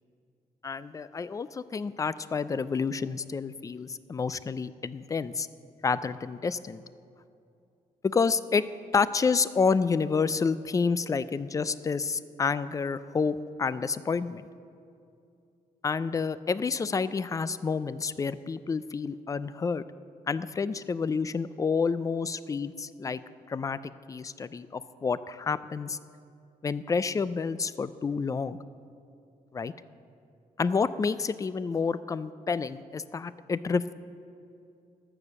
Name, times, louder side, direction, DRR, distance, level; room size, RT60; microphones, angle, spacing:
voice 1, 0.6-5.5 5.8-6.8 8.0-8.6 8.9-14.4 15.8-19.8 20.3-23.2 23.5-26.0 26.6-28.6 29.5-29.7 30.6-33.9, left 5 dB, 20° left, 16 dB, 0.3 m, -29 dB
13.0 x 6.9 x 7.3 m, 2.5 s
wide cardioid pair, 135°, 15 cm